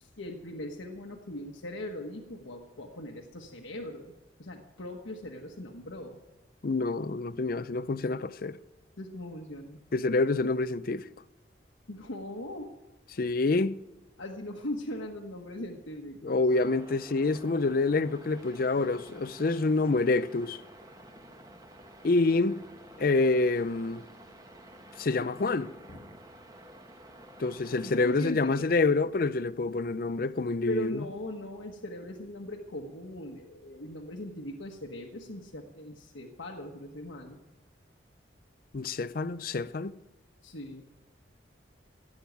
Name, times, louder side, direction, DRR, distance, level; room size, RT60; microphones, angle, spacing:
voice 1, 0.0-4.1 4.4-6.2 9.0-9.8 11.9-12.7 14.2-16.4 25.9-26.0 27.8-28.7 30.7-37.4 40.4-40.8, left 1 dB, 85° left, 1.3 m, -39 dB
voice 2, 6.6-8.6 9.9-11.1 13.1-13.8 16.2-20.6 22.0-22.6 23.0-24.0 25.0-25.7 27.4-31.0 38.7-39.9, left 3 dB, 50° left, 0.5 m, -27 dB
sound 1, 16.5-28.2, right 1 dB, 20° right, 1.3 m, -51 dB
16.0 x 8.7 x 9.3 m
head